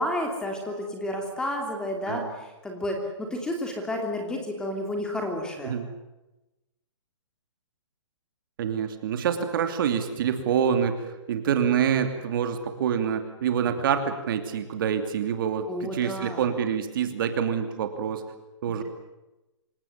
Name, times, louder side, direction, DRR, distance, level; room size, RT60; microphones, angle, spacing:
voice 1, 0.0-5.7 15.7-16.5 18.7-18.8, left 1 dB, 5° left, 3 dB, 3.1 m, -31 dB
voice 2, 8.6-11.0 11.3-18.2 18.6-18.8, right 8 dB, 45° right, 8 dB, 2.8 m, -26 dB
27.0 x 18.0 x 9.5 m, 1.0 s
hypercardioid pair, 165°, 16 cm